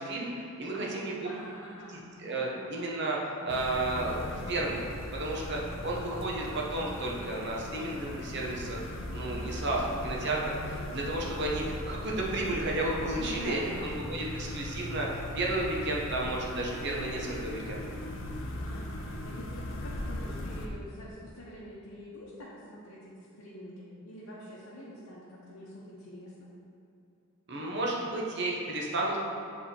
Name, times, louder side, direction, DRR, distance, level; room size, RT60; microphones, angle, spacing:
voice 1, 0.0-1.2 1.9-8.8 9.1-17.8 27.5-29.2, right 2 dB, 50° right, -2 dB, 0.9 m, -32 dB
voice 2, 0.7-2.5 13.1-14.2 18.4-26.5, equal, 90° left, -7 dB, 1.0 m, -45 dB
sound 1, 3.5-20.7, left 1 dB, 60° left, 0.6 m, -39 dB
7.1 x 3.6 x 4.3 m, 2.7 s
head